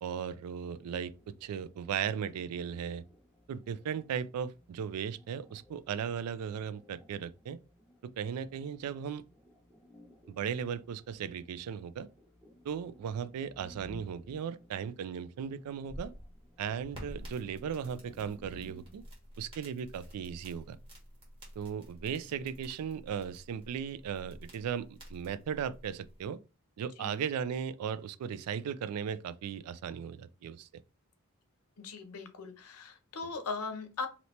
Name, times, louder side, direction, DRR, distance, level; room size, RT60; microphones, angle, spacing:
voice 1, 0.0-3.0 3.5-7.6 8.0-9.2 10.3-12.1 12.6-16.1 16.6-19.0 19.4-20.8 21.6-26.4 26.8-30.7, right 7 dB, 85° right, 0.3 m, -37 dB
sound 1, 0.6-19.0, equal, ahead, 0.5 m, -59 dB
sound 2, 15.6-26.3, equal, 25° right, 1.2 m, -50 dB
voice 2, 31.8-34.1, left 4 dB, 85° left, 0.6 m, -39 dB
2.8 x 2.8 x 3.1 m
head